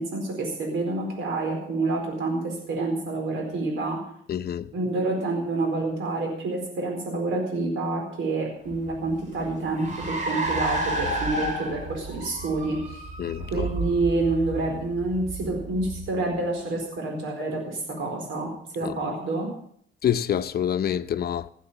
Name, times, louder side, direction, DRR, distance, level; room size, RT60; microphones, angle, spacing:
voice 1, 0.0-4.0 4.7-13.0 13.5-18.5 18.7-19.5, right 2 dB, 80° right, 4.5 m, -28 dB
voice 2, 4.3-4.7 13.2-13.7 18.8-19.0 20.0-21.5, left 9 dB, 50° left, 0.8 m, -27 dB
Car, 8.7-16.5, right 1 dB, 40° right, 4.1 m, -32 dB
17.0 x 8.4 x 6.9 m
cardioid pair, 90°, 20 cm